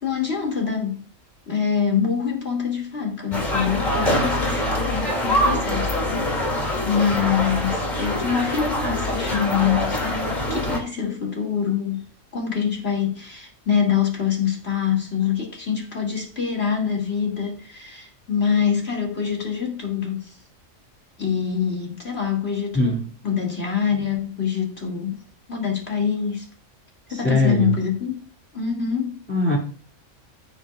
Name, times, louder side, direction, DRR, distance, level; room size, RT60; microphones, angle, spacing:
voice 1, 0.0-1.0 1.5-6.5 6.8-12.0 12.3-20.3 21.2-23.0 23.2-25.2 25.5-26.5 27.1-28.1 28.5-29.2, left 7 dB, 55° left, -1 dB, 2.8 m, -25 dB
sound 1, 3.3-10.8, left 1 dB, 35° left, 2.7 m, -24 dB
voice 2, 27.1-27.7 29.3-29.6, left 1 dB, 10° left, -3 dB, 2.4 m, -20 dB
16.0 x 6.9 x 2.4 m, 0.42 s
omnidirectional pair, 1.3 m